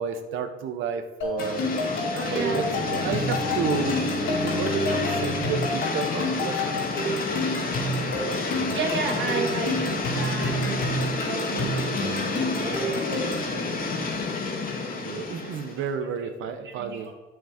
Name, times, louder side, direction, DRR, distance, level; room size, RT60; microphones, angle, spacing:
voice 1, 0.0-1.7 2.3-3.9 4.2-6.9 15.0-17.1, right 6 dB, 85° right, 9 dB, 0.9 m, -31 dB
sound 1, 1.2-13.5, left 1 dB, 80° left, 2.9 m, -30 dB
sound 2, 1.4-15.9, left 3 dB, 45° left, 1.5 m, -29 dB
Bowed string instrument, 2.0-5.6, left 1 dB, ahead, 1.7 m, -34 dB
voice 2, 2.1-2.6 8.7-10.8 11.3-11.8 12.2-13.1 15.1-15.5 16.6-17.0, right 4 dB, 70° right, 1 dB, 1.9 m, -32 dB
7.9 x 5.9 x 5.0 m, 1.2 s
cardioid pair, 90°, 20 cm